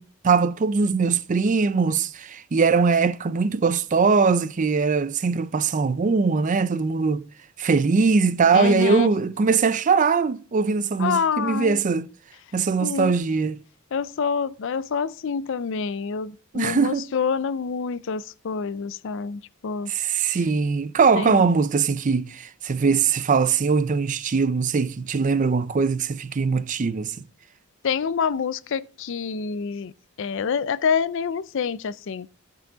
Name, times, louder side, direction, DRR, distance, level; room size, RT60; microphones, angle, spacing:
voice 1, 0.0-7.2 7.6-12.1 12.5-13.6 16.5-17.1 19.9-27.1, right 5 dB, 35° right, 0.4 m, -21 dB
voice 2, 8.5-9.1 11.0-11.8 12.8-13.1 13.9-19.9 21.2-21.3 27.8-29.9 30.2-32.3, left 6 dB, 60° left, 0.4 m, -27 dB
14.0 x 5.6 x 3.9 m
head